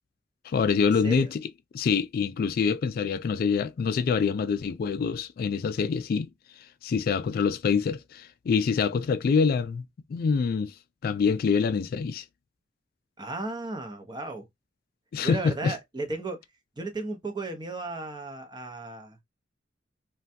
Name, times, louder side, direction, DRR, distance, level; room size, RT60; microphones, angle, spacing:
voice 1, 0.4-1.5 1.7-6.3 6.6-10.7 11.0-12.2 15.1-15.7, left 5 dB, 55° left, 0.3 m, -26 dB
voice 2, 13.2-14.5 15.2-16.4 16.8-19.2, right 2 dB, 25° right, 0.6 m, -35 dB
3.3 x 2.2 x 2.6 m
head